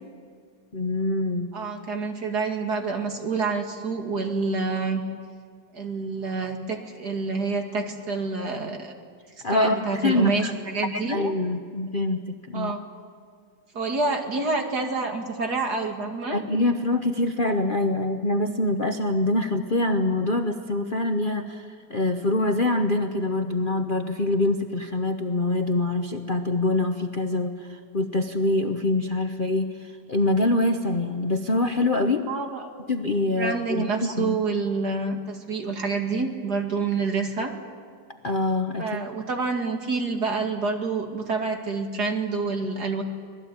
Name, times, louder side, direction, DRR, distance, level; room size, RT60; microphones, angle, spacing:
voice 1, 0.7-1.5 9.4-10.5 10.9-12.7 16.3-32.3 32.9-34.4 38.2-39.0, left 2 dB, 40° left, 5 dB, 0.9 m, -25 dB
voice 2, 1.5-5.0 5.7-8.9 9.5-11.2 12.5-12.8 13.7-16.4 32.3-32.9 33.4-37.5 38.8-43.0, right 4 dB, 60° right, 3 dB, 2.8 m, -27 dB
25.5 x 19.0 x 8.7 m, 2.1 s
omnidirectional pair, 2.0 m